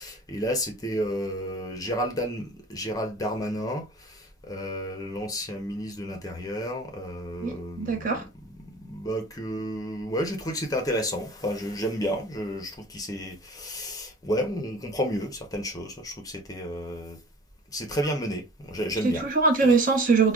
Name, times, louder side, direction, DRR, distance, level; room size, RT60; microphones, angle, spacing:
voice 1, 0.0-8.3 8.6-17.2 17.7-19.3 19.6-19.7, equal, 20° left, 0.6 m, -31 dB
voice 2, 7.4-8.2 19.0-20.3, right 4 dB, 45° right, 0.9 m, -22 dB
4.7 x 2.1 x 2.3 m
head